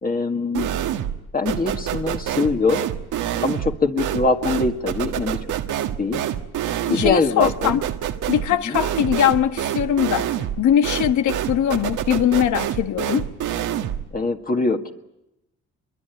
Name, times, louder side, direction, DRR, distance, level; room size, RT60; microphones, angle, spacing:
voice 1, 0.0-0.7 1.3-2.9 3.4-5.4 6.0-6.2 6.9-7.8 8.7-8.8 14.1-14.9, left 3 dB, 30° left, 1.9 m, -22 dB
sound 1, 0.5-1.2 1.5-14.1, right 10 dB, 85° right, 1.6 m, -27 dB
voice 2, 6.9-7.8 8.3-13.3, left 10 dB, 75° left, 1.5 m, -21 dB
26.0 x 22.5 x 9.2 m
cardioid pair, 90°, 30 cm